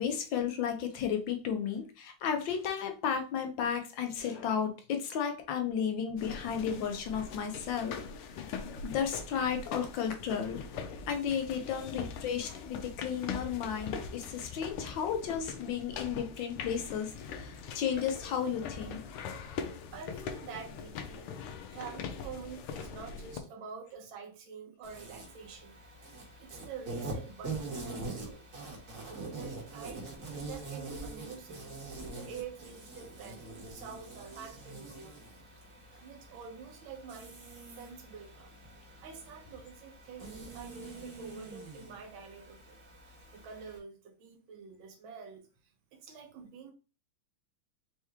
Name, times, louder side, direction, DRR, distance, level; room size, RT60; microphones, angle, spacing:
voice 1, 0.0-7.9 8.2-8.5 8.8-19.0, left 7 dB, 70° left, 5 dB, 1.3 m, -33 dB
sound 1, 6.2-23.4, left 6 dB, 85° left, 1.6 m, -42 dB
voice 2, 19.9-21.3 21.7-25.8 26.4-28.4 29.1-30.0 30.5-31.8 32.1-35.1 35.9-37.4 37.8-38.5 39.0-42.8 43.1-45.4 45.9-46.7, right 6 dB, 70° right, 4 dB, 1.6 m, -47 dB
Insect, 24.8-43.8, right 3 dB, 40° right, 1.5 m, -44 dB
4.5 x 3.0 x 3.5 m, 0.34 s
omnidirectional pair, 2.4 m